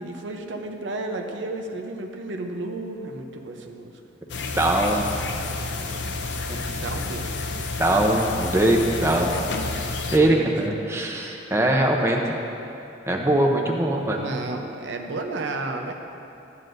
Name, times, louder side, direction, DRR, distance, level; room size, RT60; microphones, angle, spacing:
voice 1, 0.0-4.0 6.8-7.3 10.0-11.0 11.7-11.9 14.2-15.9, right 2 dB, 80° right, 3 dB, 0.7 m, -33 dB
sound 1, 4.3-10.2, left 3 dB, 70° left, 0.6 m, -30 dB
voice 2, 4.5-5.2 7.8-9.4 10.1-12.3 13.1-14.2, right 1 dB, 15° right, 0 dB, 0.6 m, -21 dB
12.0 x 9.5 x 2.6 m, 2.8 s
head